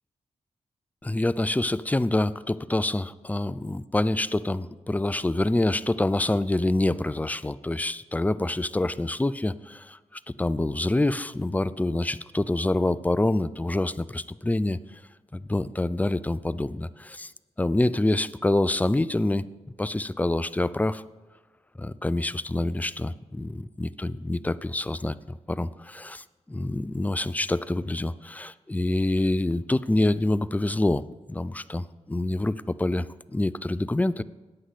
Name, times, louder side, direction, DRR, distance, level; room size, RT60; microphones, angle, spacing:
voice 1, 1.0-10.0 10.4-14.8 15.3-17.3 17.6-19.4 19.8-21.0 21.8-31.0 31.3-34.2, left 2 dB, 15° left, 17 dB, 0.5 m, -26 dB
14.0 x 9.4 x 4.2 m, 1.3 s
cardioid pair, 55°, 12 cm